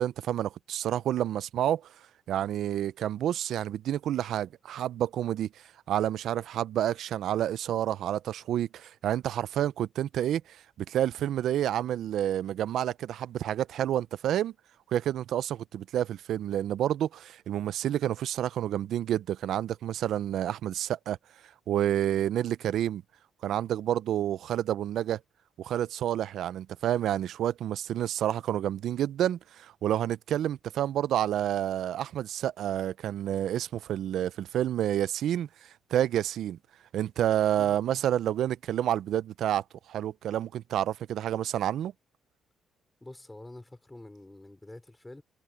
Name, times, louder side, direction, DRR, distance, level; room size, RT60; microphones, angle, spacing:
voice 1, 0.0-1.8 2.3-5.5 5.9-10.4 10.9-14.5 14.9-21.2 21.7-23.0 23.4-25.2 25.6-35.5 35.9-36.6 36.9-41.9, right 11 dB, 75° right, 0.5 m, -29 dB
voice 2, 43.0-45.2, left 2 dB, 15° left, 3.5 m, -47 dB
cardioid pair, 90°, 0 cm